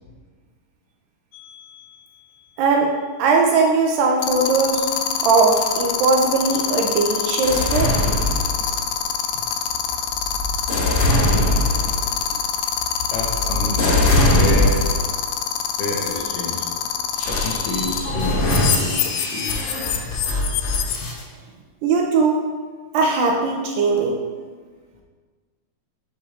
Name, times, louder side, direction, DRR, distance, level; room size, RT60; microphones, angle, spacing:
sound 1, 1.3-1.6 4.2-18.0 18.4-21.0, left 10 dB, 90° left, 1.9 m, -24 dB
voice 1, 2.6-2.9 3.2-4.8 5.2-7.9 21.8-22.4 22.9-24.2, right 4 dB, 80° right, 1 dB, 2.1 m, -19 dB
sound 2, 7.4-9.0 9.7-15.2 15.8-16.1 17.2-21.2, left 1 dB, 55° left, 3.1 m, -22 dB
voice 2, 13.1-14.8 15.8-16.7 17.2-18.5 18.8-20.6 21.0-21.1, left 2 dB, 75° left, -1 dB, 2.2 m, -29 dB
8.5 x 6.6 x 2.4 m, 1.5 s
omnidirectional pair, 4.4 m